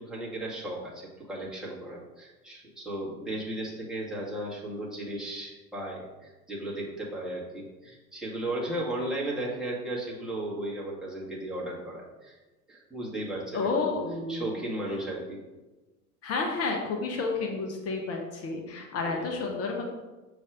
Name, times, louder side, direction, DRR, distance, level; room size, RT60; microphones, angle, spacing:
voice 1, 0.1-12.3 12.7-14.0 14.3-15.4 19.0-19.5, right 1 dB, ahead, -6 dB, 2.0 m, -35 dB
voice 2, 13.5-14.5 16.2-19.8, left 3 dB, 35° left, 1 dB, 1.1 m, -30 dB
6.8 x 3.3 x 5.0 m, 1.1 s
figure-of-eight pair, 75°, 44 cm